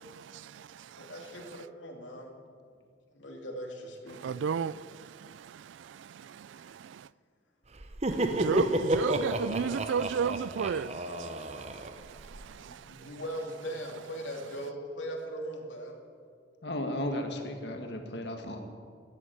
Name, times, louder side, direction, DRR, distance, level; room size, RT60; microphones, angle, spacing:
voice 1, 1.0-2.4 3.1-4.4 12.3-16.0, equal, 80° left, 2.6 m, -40 dB
voice 2, 4.2-4.7 8.3-10.9 11.2-11.3, right 6 dB, 80° right, 0.3 m, -31 dB
Laughter, 7.8-12.5, right 1 dB, 35° right, 0.8 m, -31 dB
voice 3, 16.6-18.6, left 1 dB, 65° left, 1.8 m, -34 dB
13.5 x 9.7 x 9.4 m
head